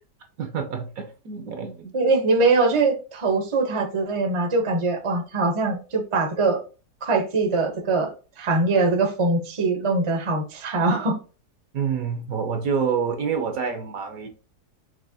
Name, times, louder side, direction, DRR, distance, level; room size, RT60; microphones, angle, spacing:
voice 1, 0.4-1.9 11.7-14.3, right 6 dB, 65° right, 4 dB, 1.1 m, -27 dB
voice 2, 1.9-6.6 7.0-8.1 8.4-11.2, right 3 dB, 30° right, 2 dB, 0.6 m, -22 dB
5.4 x 2.9 x 2.7 m, 0.35 s
omnidirectional pair, 1.8 m